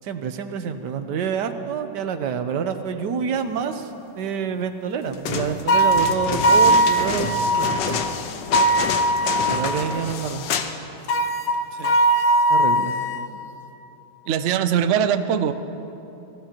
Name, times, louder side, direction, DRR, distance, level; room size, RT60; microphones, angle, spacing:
voice 1, 0.0-3.9 4.2-8.0 9.5-10.5 12.5-13.0, right 7 dB, 80° right, 9 dB, 1.4 m, -27 dB
sound 1, 5.1-10.8 11.0-11.1, left 6 dB, 85° left, 1.5 m, -28 dB
sound 2, 5.7-7.8 8.5-9.8 11.1-13.3, right 1 dB, 70° left, 1.3 m, -19 dB
voice 2, 14.3-15.5, right 9 dB, 65° right, 9 dB, 0.7 m, -22 dB
25.0 x 17.0 x 3.0 m, 3.0 s
omnidirectional pair, 1.9 m